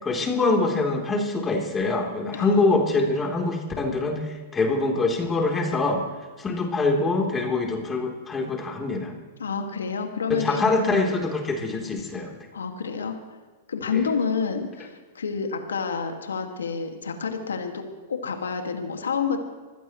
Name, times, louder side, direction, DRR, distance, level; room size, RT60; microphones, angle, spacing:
voice 1, 0.0-6.0 6.4-9.1 10.3-12.3 13.9-14.0, left 3 dB, 20° left, 1 dB, 3.6 m, -24 dB
voice 2, 9.4-10.6 12.5-13.2 13.7-17.8 18.1-19.4, left 5 dB, 90° left, 5 dB, 2.1 m, -28 dB
25.5 x 16.0 x 3.2 m, 1.4 s
hypercardioid pair, 115°, 0 cm